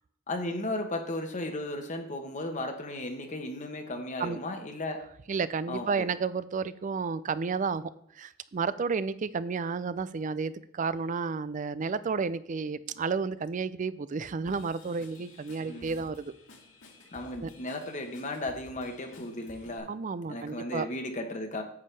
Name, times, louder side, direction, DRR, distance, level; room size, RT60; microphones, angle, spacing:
voice 1, 0.3-5.0 5.7-6.1 15.7-16.1 17.1-19.9 20.3-21.6, left 1 dB, 40° left, 4 dB, 1.0 m, -35 dB
voice 2, 5.3-16.3 17.4-17.5 19.9-20.9, right 5 dB, 40° right, 16 dB, 0.4 m, -32 dB
Drum kit / Drum, 14.5-19.8, left 2 dB, 85° left, 2.8 m, -54 dB
9.6 x 7.4 x 3.3 m, 0.74 s
head